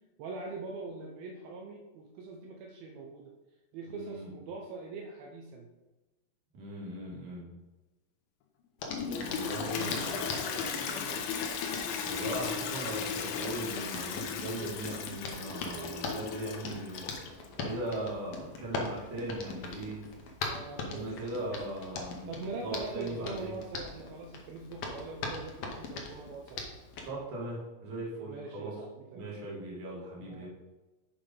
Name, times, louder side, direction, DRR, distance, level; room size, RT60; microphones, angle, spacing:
voice 1, 0.2-3.3 3.7-5.7 9.0-11.3 15.7-16.0 20.4-21.3 22.3-26.7 28.3-29.3 30.2-30.5, right 3 dB, 85° right, 0 dB, 2.6 m, -43 dB
voice 2, 3.9-4.4 6.5-7.5 9.3-10.3 12.0-17.1 17.5-20.0 20.8-22.3 22.6-23.5 27.0-28.7 29.1-30.5, right 1 dB, 60° right, -5 dB, 3.4 m, -39 dB
Hands, 8.8-27.1, left 3 dB, 70° left, 1.5 m, -42 dB
Toilet flush, 8.9-17.5, left 6 dB, 85° left, 2.6 m, -36 dB
7.4 x 5.0 x 5.2 m, 1.1 s
omnidirectional pair, 4.2 m